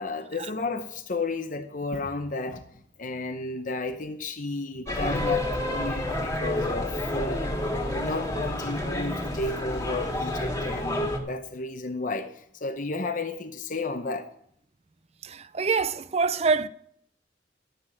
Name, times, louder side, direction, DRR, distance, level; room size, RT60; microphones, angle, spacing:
voice 1, 0.0-2.6 3.0-7.5 8.0-14.3, left 3 dB, 45° left, 0.8 m, -32 dB
sound 1, 4.9-11.2, left 1 dB, 15° left, 1.9 m, -29 dB
voice 2, 15.2-16.7, right 4 dB, 35° right, 0.5 m, -25 dB
12.0 x 7.8 x 6.4 m
head